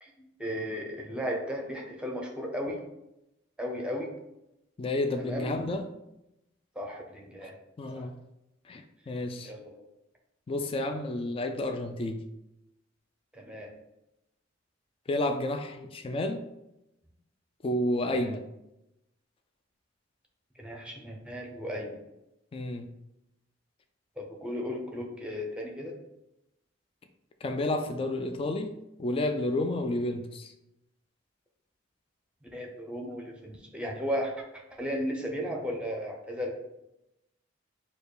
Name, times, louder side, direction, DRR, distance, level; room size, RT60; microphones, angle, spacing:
voice 1, 0.0-2.8 3.6-4.1 5.2-5.7 6.7-7.6 7.9-8.1 9.4-9.7 13.3-13.7 18.2-18.3 20.6-22.0 24.2-25.9 32.5-36.6, equal, 5° right, 1 dB, 0.7 m, -35 dB
voice 2, 4.8-5.9 7.8-8.1 8.7-9.5 10.5-12.2 15.1-16.4 17.6-18.4 22.5-22.9 27.4-30.5, left 1 dB, 30° left, 6 dB, 0.3 m, -31 dB
4.6 x 2.3 x 4.8 m, 0.89 s
head